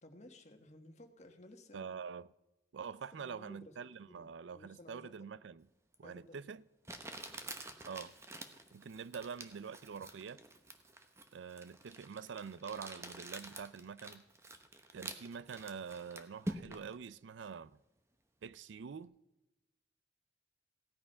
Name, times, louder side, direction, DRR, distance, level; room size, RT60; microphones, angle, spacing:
voice 1, 0.0-1.9 2.9-3.7 4.1-5.1 6.0-6.4, left 1 dB, 40° left, 1.4 m, -56 dB
voice 2, 1.7-2.3 2.7-5.7 6.0-6.7 7.8-8.1 8.7-10.4 11.3-14.2 14.9-17.7 18.4-19.1, right 6 dB, 80° right, 0.4 m, -46 dB
Crumpling crinkling, 5.9-6.0 6.8-16.9, right 1 dB, 15° right, 0.9 m, -47 dB
16.0 x 9.5 x 5.6 m
head